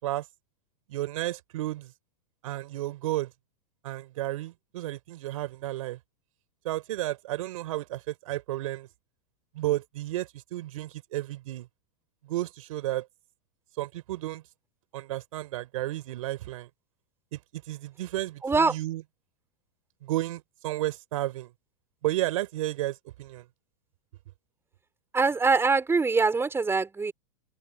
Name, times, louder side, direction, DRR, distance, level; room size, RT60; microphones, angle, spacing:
voice 1, 0.9-1.9 2.4-3.3 3.8-6.0 6.6-8.9 9.5-11.7 12.2-13.1 13.8-14.4 14.9-16.7 17.3-17.4 17.7-19.0 20.0-21.5 22.0-23.5, right 16 dB, 65° right, 3.8 m, -32 dB
voice 2, 18.4-18.7 25.1-27.1, right 4 dB, 15° right, 4.7 m, -23 dB
open air
hypercardioid pair, 105°, 19 cm